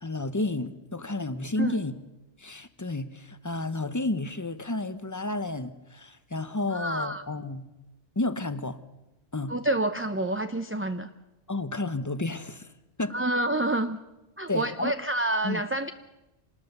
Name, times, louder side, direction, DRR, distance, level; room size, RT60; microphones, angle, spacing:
voice 1, 0.0-1.9 2.4-7.7 8.2-8.8 9.3-9.6 11.5-12.7 13.0-13.2 14.5-14.9 15.4-15.6, left 2 dB, 15° left, 12 dB, 0.9 m, -31 dB
voice 2, 6.7-7.2 9.5-11.1 13.1-14.0 14.4-15.9, right 1 dB, 15° right, 8 dB, 0.5 m, -28 dB
26.0 x 19.5 x 6.7 m, 1.0 s
omnidirectional pair, 1.2 m